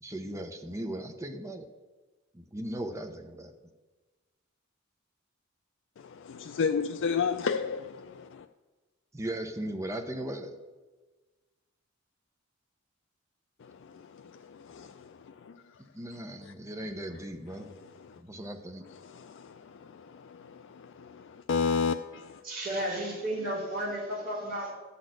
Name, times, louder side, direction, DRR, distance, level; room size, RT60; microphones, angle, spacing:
voice 1, 0.0-1.7 2.3-3.5 9.1-10.5 15.9-17.8 18.2-18.8, right 1 dB, 15° right, 0.8 m, -37 dB
voice 2, 6.0-8.5 13.6-15.6 18.1-18.2 19.0-22.4, left 5 dB, 60° left, 0.4 m, -33 dB
voice 3, 22.4-24.7, right 1 dB, 45° right, 3.5 m, -33 dB
11.5 x 4.2 x 7.8 m
head